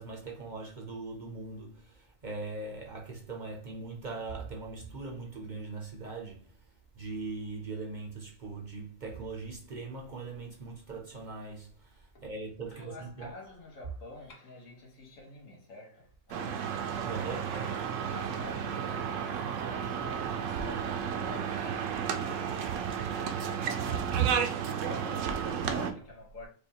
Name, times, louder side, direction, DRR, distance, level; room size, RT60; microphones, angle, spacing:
voice 1, 0.0-6.6 6.9-13.3 17.0-17.5, right 3 dB, 45° right, 0.6 m, -40 dB
voice 2, 12.7-16.7 17.5-23.1 23.4-26.5, left 2 dB, 75° left, 1.6 m, -47 dB
sound 1, 16.3-25.9, right 7 dB, 75° right, 0.9 m, -32 dB
4.9 x 2.3 x 2.8 m
omnidirectional pair, 1.4 m